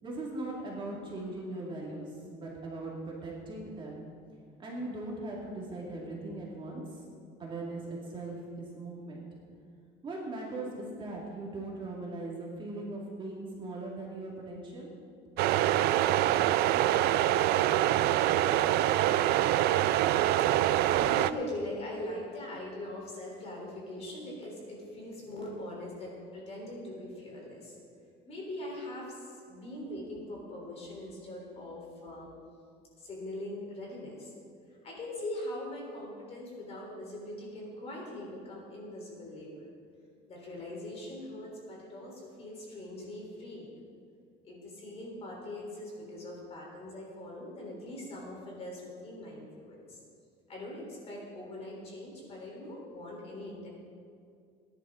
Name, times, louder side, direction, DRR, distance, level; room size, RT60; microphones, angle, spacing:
voice 1, 0.0-4.0 4.6-7.0 7.4-9.2 10.0-14.9, right 2 dB, 25° right, -3 dB, 2.3 m, -39 dB
sound 1, 15.4-21.3, right 13 dB, 65° right, 0.4 m, -25 dB
voice 2, 20.3-27.8 28.3-32.3 33.0-34.3 34.8-39.7 40.3-43.7 44.4-50.0 50.5-53.7, left 1 dB, 35° left, -2 dB, 3.9 m, -41 dB
19.5 x 10.5 x 3.8 m, 2.3 s
cardioid pair, 155°, 18 cm